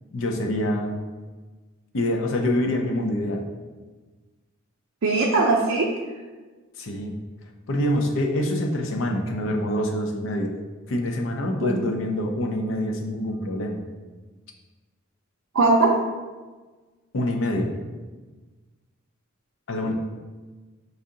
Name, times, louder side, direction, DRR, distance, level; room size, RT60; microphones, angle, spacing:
voice 1, 0.1-1.0 1.9-3.4 6.8-7.1 7.7-10.5 10.9-13.8 17.1-17.7 19.7-19.9, left 1 dB, 65° left, 2 dB, 0.6 m, -25 dB
voice 2, 5.0-5.9 11.6-11.8 15.5-16.0 19.8-19.9, right 3 dB, 75° right, -2 dB, 0.5 m, -20 dB
4.7 x 2.7 x 3.7 m, 1.3 s
head